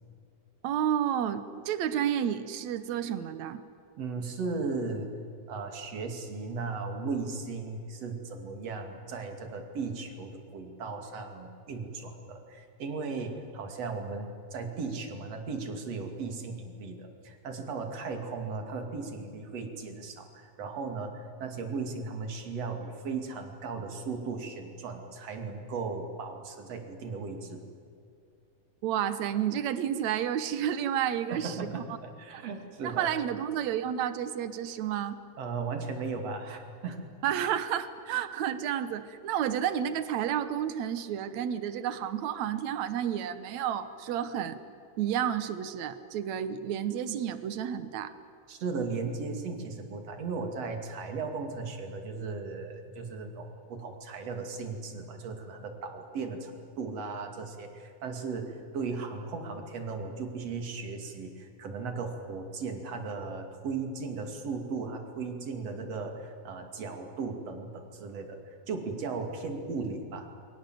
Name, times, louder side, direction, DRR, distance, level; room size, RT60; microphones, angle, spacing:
voice 1, 0.6-3.6 28.8-31.8 32.8-35.2 37.2-44.6 45.0-48.1, right 9 dB, 75° right, 12 dB, 1.7 m, -31 dB
voice 2, 4.0-5.1 5.5-27.6 31.3-33.1 35.4-37.1 48.5-70.3, right 4 dB, 45° right, 4 dB, 3.2 m, -36 dB
29.0 x 23.0 x 7.8 m, 2.4 s
omnidirectional pair, 4.7 m